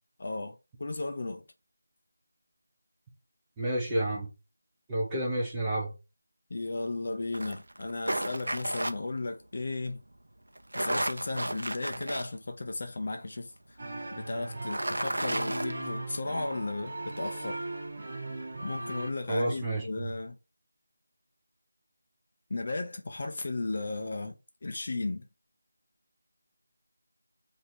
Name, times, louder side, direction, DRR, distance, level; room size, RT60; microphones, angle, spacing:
voice 1, 0.2-1.4 6.5-10.0 10.7-13.8 14.2-17.6 18.6-20.4 22.5-25.3, left 2 dB, 40° left, 0.5 m, -35 dB
voice 2, 3.6-4.3 4.9-5.9 19.3-20.1, right 1 dB, 10° right, 0.8 m, -30 dB
sound 1, 7.3-8.9 10.6-12.3 12.8-12.9 14.5-15.7, right 1 dB, 85° right, 0.6 m, -32 dB
sound 2, 13.8-19.1, right 2 dB, 35° right, 1.5 m, -38 dB
5.8 x 2.6 x 2.8 m
figure-of-eight pair, 175°, 0 cm